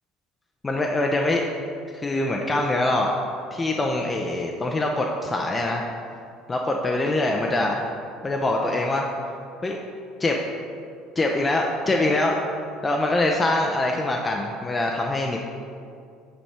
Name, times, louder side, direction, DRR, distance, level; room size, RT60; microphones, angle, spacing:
voice 1, 0.6-1.4 1.9-3.1 3.5-5.9 6.5-7.8 8.2-9.1 9.6-9.8 10.2-10.4 11.2-12.4 12.8-15.4, left 2 dB, 20° left, 0 dB, 0.5 m, -24 dB
5.7 x 5.3 x 4.3 m, 2.4 s
figure-of-eight pair, 60°, 0 cm